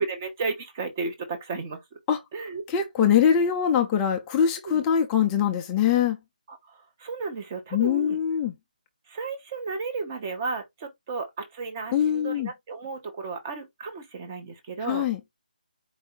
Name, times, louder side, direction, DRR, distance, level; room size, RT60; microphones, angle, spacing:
voice 1, 0.0-1.8 2.3-2.7 4.6-4.8 6.5-8.2 9.1-15.1, right 4 dB, 20° right, 0.9 m, -33 dB
voice 2, 2.7-6.2 7.7-8.5 11.9-12.5 14.9-15.2, left 8 dB, 5° left, 0.3 m, -23 dB
4.6 x 2.6 x 3.8 m
figure-of-eight pair, 170°, 5 cm